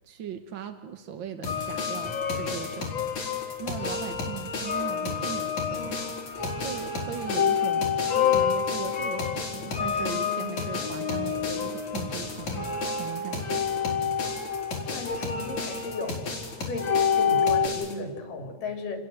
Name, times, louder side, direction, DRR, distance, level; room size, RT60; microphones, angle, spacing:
voice 1, 0.0-2.9 3.6-6.0 6.6-13.7, right 8 dB, 55° right, 8 dB, 1.3 m, -39 dB
sound 1, 1.4-17.9, left 3 dB, 60° left, 5.6 m, -35 dB
sound 2, 1.5-17.7, left 7 dB, 40° left, 2.3 m, -29 dB
voice 2, 14.9-16.2 16.6-16.9 17.2-19.0, left 3 dB, 75° left, 4 dB, 4.8 m, -35 dB
29.5 x 21.5 x 7.8 m, 1.4 s
omnidirectional pair, 3.8 m